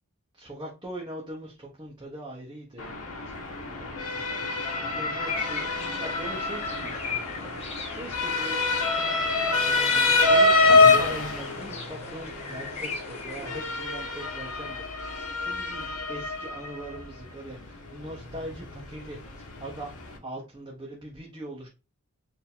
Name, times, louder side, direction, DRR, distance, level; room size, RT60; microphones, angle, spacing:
voice 1, 0.4-3.0 3.3-7.6 7.9-8.6 9.2-9.6 9.9-19.9 20.2-21.7, right 1 dB, 20° right, 1.0 m, -41 dB
Motor vehicle (road) / Siren, 2.8-20.2, left 3 dB, 75° left, 1.4 m, -26 dB
sound 1, 5.2-13.6, left 4 dB, 30° left, 1.2 m, -39 dB
4.6 x 2.9 x 3.6 m
head